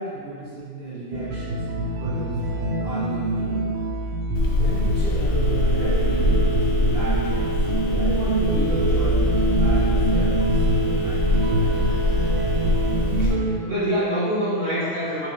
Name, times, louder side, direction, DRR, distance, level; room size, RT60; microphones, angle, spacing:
voice 1, 0.0-3.7 4.5-12.2, right 2 dB, 35° right, -12 dB, 1.3 m, -34 dB
sound 1, 1.1-13.6, right 1 dB, 75° right, 0.6 m, -25 dB
Telephone, 4.3-13.3, left 1 dB, 85° left, 0.5 m, -23 dB
voice 2, 13.2-15.3, equal, 55° right, -11 dB, 1.6 m, -25 dB
5.4 x 3.4 x 2.6 m, 2.2 s
omnidirectional pair, 1.6 m